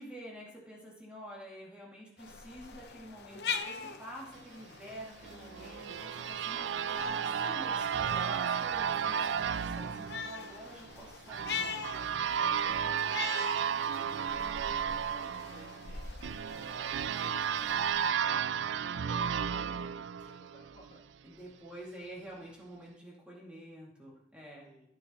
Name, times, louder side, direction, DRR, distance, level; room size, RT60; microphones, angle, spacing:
voice 1, 0.0-9.2 9.5-11.8 12.1-12.2 18.0-18.8 21.2-24.7, right 1 dB, 5° right, -6 dB, 2.6 m, -48 dB
sound 1, 2.2-18.1, left 6 dB, 70° left, 1.0 m, -43 dB
sound 2, 5.2-20.9, right 8 dB, 90° right, 0.4 m, -33 dB
voice 2, 5.5-6.0 12.6-18.2 18.9-21.0 24.6-24.9, equal, 35° left, -4 dB, 3.0 m, -58 dB
16.0 x 9.6 x 3.2 m, 0.76 s
head